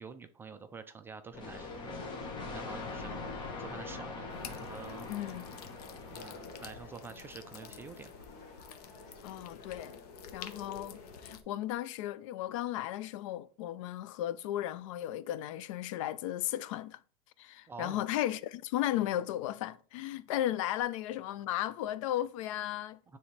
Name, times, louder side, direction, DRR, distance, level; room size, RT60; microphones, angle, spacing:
voice 1, 0.0-4.3 4.6-5.1 6.1-8.3 17.7-18.0 23.1-23.2, right 5 dB, 10° right, 0.3 m, -48 dB
Conversation, 1.3-11.3, left 4 dB, 40° left, 1.7 m, -51 dB
sound 1, 1.3-7.0, left 3 dB, 25° left, 1.2 m, -42 dB
sound 2, 4.3-11.4, left 7 dB, 85° left, 0.9 m, -51 dB
voice 2, 5.1-5.6 9.2-10.0 10.3-17.0 17.4-23.0, left 13 dB, 55° left, 0.5 m, -35 dB
9.8 x 3.4 x 3.2 m
supercardioid pair, 145°, 19 cm